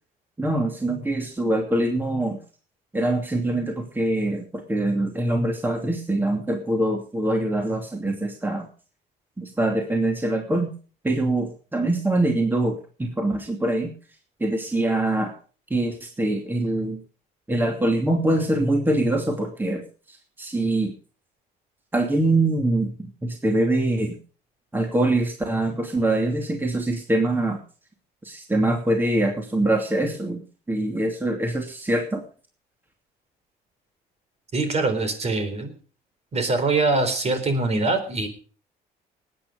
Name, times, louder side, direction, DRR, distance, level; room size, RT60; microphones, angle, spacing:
voice 1, 0.4-2.4 2.9-8.6 9.4-10.7 11.0-13.9 14.4-15.3 15.7-17.0 17.5-20.9 21.9-24.2 24.7-27.6 28.2-30.4 30.7-32.2, right 1 dB, 10° right, 2 dB, 2.7 m, -24 dB
voice 2, 34.5-35.7 36.3-38.3, right 3 dB, 40° right, 9 dB, 4.0 m, -23 dB
19.0 x 9.4 x 5.1 m, 0.39 s
cardioid pair, 110°, 17 cm